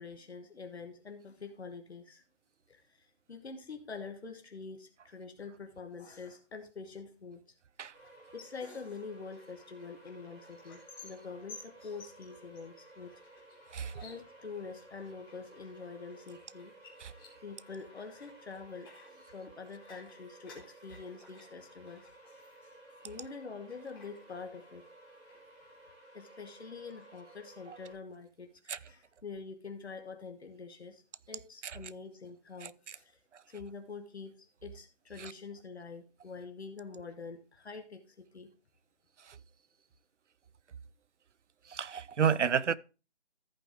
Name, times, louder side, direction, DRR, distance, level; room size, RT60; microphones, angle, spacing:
voice 1, 0.0-2.2 2.7-7.4 8.3-13.2 14.0-16.7 17.4-22.7 23.0-24.9 26.1-33.2 33.5-38.5, left 4 dB, 65° left, 1.3 m, -46 dB
sound 1, 7.9-27.9, right 1 dB, 25° right, 3.0 m, -56 dB
sound 2, 8.0-23.3 23.7-24.9 25.1-25.8, left 4 dB, 20° left, 1.9 m, -58 dB
voice 2, 41.7-42.8, right 7 dB, 85° right, 0.6 m, -29 dB
14.5 x 5.1 x 3.4 m
figure-of-eight pair, 160°, 35 cm